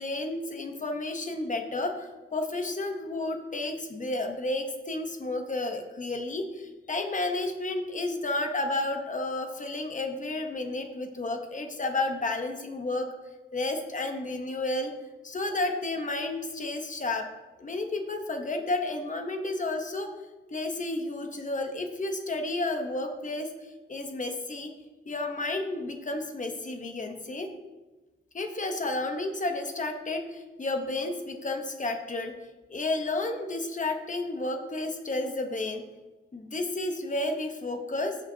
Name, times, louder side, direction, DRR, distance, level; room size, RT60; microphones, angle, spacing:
voice 1, 0.0-13.1 13.5-14.9 15.2-17.3 17.6-20.1 20.5-24.7 25.1-27.5 28.3-32.3 32.7-35.8 36.3-38.2, left 2 dB, 35° left, 4 dB, 1.0 m, -31 dB
15.5 x 5.4 x 2.8 m, 1.1 s
wide cardioid pair, 165°, 21 cm